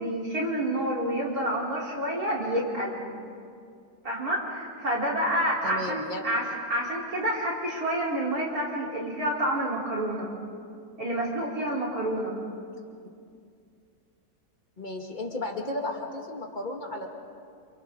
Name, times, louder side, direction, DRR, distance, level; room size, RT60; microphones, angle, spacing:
voice 1, 0.0-3.0 4.0-6.4 6.7-10.3 11.0-12.3, right 1 dB, 65° right, -4 dB, 4.7 m, -28 dB
voice 2, 5.6-6.2 14.8-17.1, left 2 dB, 30° left, 1 dB, 2.3 m, -34 dB
29.0 x 27.5 x 3.9 m, 2.3 s
omnidirectional pair, 1.6 m